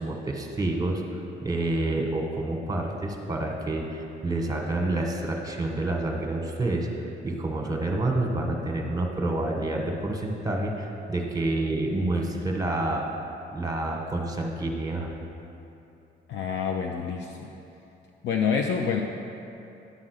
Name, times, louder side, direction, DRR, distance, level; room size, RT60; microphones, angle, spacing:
voice 1, 0.0-13.1 13.5-15.1, right 2 dB, 20° right, 1 dB, 1.1 m, -28 dB
voice 2, 16.3-17.5 18.2-19.0, left 6 dB, 70° left, 2 dB, 0.5 m, -27 dB
9.7 x 3.7 x 6.4 m, 2.8 s
cardioid pair, 90°, 20 cm